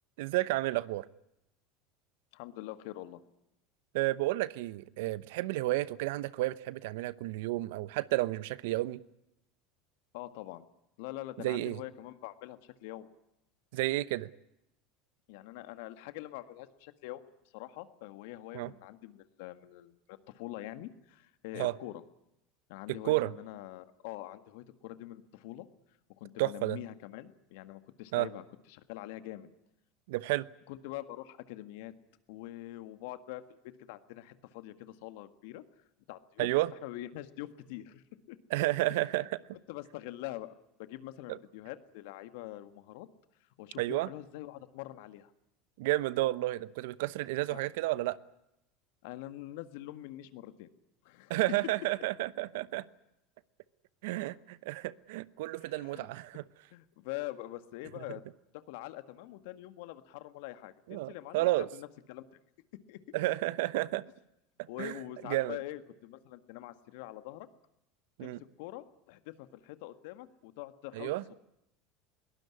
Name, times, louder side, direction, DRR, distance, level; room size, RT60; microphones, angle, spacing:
voice 1, 0.2-1.0 3.9-9.0 11.4-11.8 13.7-14.3 18.5-18.7 21.6-21.7 23.0-23.3 26.4-26.8 28.1-28.3 30.1-30.5 36.4-36.7 38.5-39.3 41.3-41.4 43.8-44.1 45.8-48.2 51.3-52.8 54.0-56.4 60.9-61.7 63.1-64.0 64.8-64.9 65.3-65.6 68.2-68.4 70.9-71.2, right 18 dB, 70° right, 18 dB, 0.9 m, -31 dB
voice 2, 2.3-3.2 10.1-10.7 11.0-13.1 15.3-17.3 17.5-22.0 22.7-25.7 26.2-28.4 28.7-29.5 30.7-31.9 32.3-35.7 36.1-36.5 36.8-38.4 39.7-43.1 43.6-45.3 47.5-47.6 49.0-50.7 51.0-51.4 55.5-56.1 56.7-58.2 58.5-62.2 62.9-63.2 64.7-67.5 68.2-71.1, left 15 dB, 70° left, 11 dB, 1.7 m, -44 dB
22.0 x 18.5 x 9.8 m, 0.86 s
hypercardioid pair, 85°, 0 cm